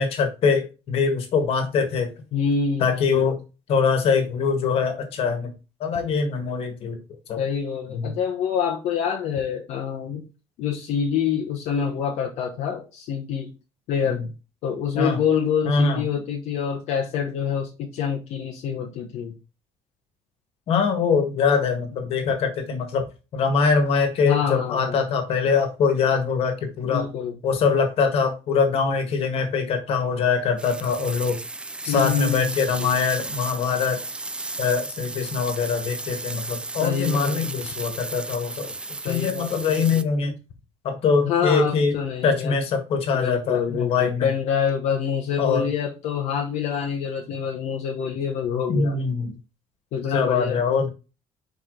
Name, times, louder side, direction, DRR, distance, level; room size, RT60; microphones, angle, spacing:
voice 1, 0.0-2.1 2.8-3.4 3.7-5.5 5.8-7.0 7.3-7.4 7.9-8.1 14.0-14.2 14.9-15.2 15.6-16.0 20.7-23.0 23.3-27.1 27.4-31.4 31.8-34.0 34.6-38.7 39.0-40.3 40.8-42.0 42.2-44.3 45.4-45.6 48.7-49.4 50.1-50.9, left 5 dB, 55° left, 6 dB, 1.7 m, -23 dB
voice 2, 2.3-3.4 7.4-10.2 10.6-13.5 13.9-14.2 14.6-19.4 24.2-25.0 26.8-27.4 31.9-33.0 36.8-37.6 39.0-40.1 41.2-42.5 43.1-48.9 49.9-50.6, left 7 dB, 75° left, 0 dB, 1.1 m, -26 dB
sound 1, 30.6-40.0, right 2 dB, 10° right, 0.3 m, -34 dB
5.3 x 5.0 x 3.9 m, 0.31 s
cardioid pair, 160°, 12 cm